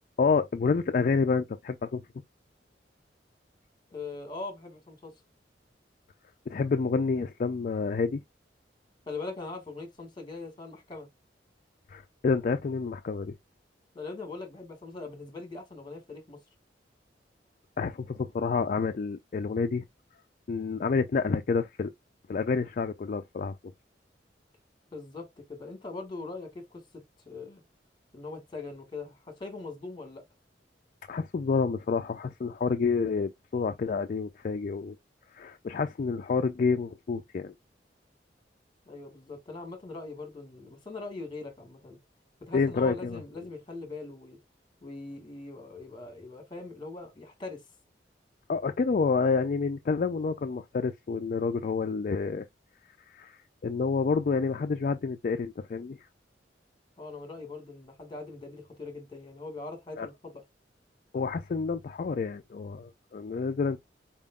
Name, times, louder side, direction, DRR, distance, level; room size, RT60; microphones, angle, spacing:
voice 1, 0.2-2.0 6.5-8.2 11.9-13.4 17.8-19.8 20.5-21.9 22.3-23.6 31.1-35.0 35.3-37.5 42.5-43.2 48.5-52.5 53.1-56.0 60.0-60.1 61.1-63.8, left 4 dB, 45° left, 0.4 m, -28 dB
voice 2, 3.9-5.1 9.1-11.1 13.9-16.4 24.9-27.6 28.1-30.2 38.8-42.0 42.4-44.4 44.8-47.6 57.0-60.4, left 3 dB, 25° left, 1.7 m, -41 dB
4.4 x 3.6 x 2.3 m
head